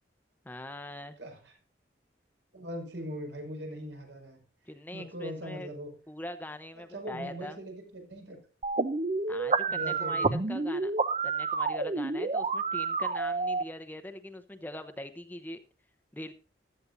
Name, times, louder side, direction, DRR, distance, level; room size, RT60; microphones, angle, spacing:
voice 1, 0.4-1.2 4.7-5.7 6.1-7.6 9.3-10.9 11.2-15.6 16.1-16.3, left 1 dB, 10° left, 7 dB, 0.8 m, -42 dB
voice 2, 1.2-1.6 2.5-4.4 4.9-6.0 6.7-8.4 9.7-10.5, equal, 70° right, 3 dB, 5.5 m, -40 dB
sound 1, 8.6-13.6, right 4 dB, 35° right, 0.6 m, -29 dB
15.0 x 12.5 x 2.6 m, 0.36 s
head